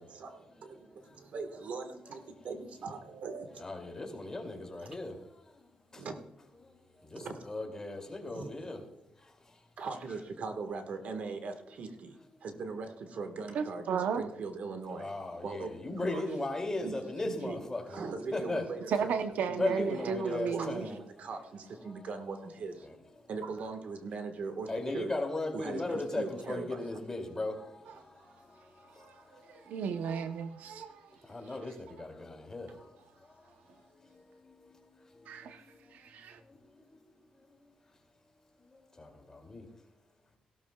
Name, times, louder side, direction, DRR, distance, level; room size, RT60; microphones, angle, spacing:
voice 1, 0.0-3.6 4.8-5.0 6.0-6.2 7.1-7.5 8.3-8.5 9.8-15.1 15.4-15.7 16.1-16.2 16.8-19.1 19.8-22.9 23.3-25.1 25.5-27.0, right 4 dB, 65° right, 7 dB, 1.4 m, -40 dB
voice 2, 3.6-5.2 5.9-6.0 7.1-8.8 14.9-18.0 18.3-18.7 19.6-21.0 22.8-23.0 24.7-27.7 31.3-32.7 39.0-39.6, left 2 dB, 20° left, 3 dB, 2.4 m, -36 dB
voice 3, 13.5-14.2 18.9-20.9 27.9-28.0 28.9-31.2 31.6-31.7 35.3-35.7 35.9-36.4, right 6 dB, 80° right, 9 dB, 0.7 m, -35 dB
17.0 x 12.5 x 2.3 m, 0.82 s
cardioid pair, 95°, 3 cm